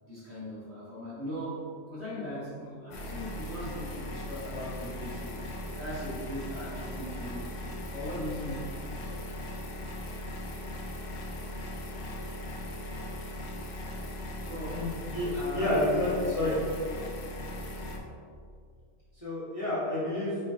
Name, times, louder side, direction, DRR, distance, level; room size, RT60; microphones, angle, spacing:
voice 1, 0.0-7.5 7.9-8.7 14.4-14.9 15.3-15.8, equal, 55° right, -10 dB, 1.9 m, -39 dB
sound 1, 2.9-18.0, left 1 dB, 60° left, 0.8 m, -38 dB
voice 2, 14.7-16.5 19.1-20.4, left 1 dB, 25° left, -10 dB, 1.1 m, -29 dB
6.0 x 3.1 x 2.8 m, 2.2 s
omnidirectional pair, 1.4 m